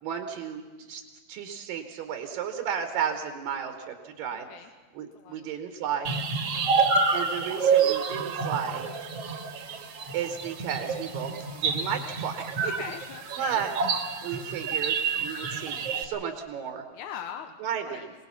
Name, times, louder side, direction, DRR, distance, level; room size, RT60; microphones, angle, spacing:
voice 1, 0.0-1.0 1.3-4.4 4.9-6.1 7.1-8.8 10.1-12.9 13.4-13.7 14.2-15.0 15.2-16.8 17.6-18.1, right 8 dB, 75° right, 6 dB, 2.8 m, -33 dB
voice 2, 4.3-4.7 5.2-5.5 6.4-6.7 12.6-13.6 16.9-17.5 17.9-18.1, left 9 dB, 70° left, 6 dB, 2.0 m, -41 dB
sound 1, 6.0-16.0, right 5 dB, 55° right, 2.0 m, -28 dB
24.5 x 19.5 x 5.8 m, 1.4 s
omnidirectional pair, 4.2 m